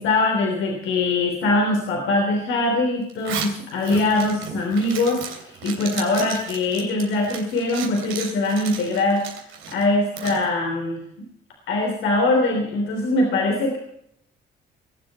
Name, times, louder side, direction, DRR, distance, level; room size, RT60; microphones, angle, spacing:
voice 1, 0.0-5.2 5.6-9.2 9.7-11.0 11.7-13.8, left 2 dB, 80° left, 1 dB, 3.3 m, -22 dB
Zipper (clothing), 3.1-10.5, right 7 dB, 90° right, 3.2 m, -35 dB
20.5 x 7.8 x 6.9 m, 0.73 s
cardioid pair, 90°, 20 cm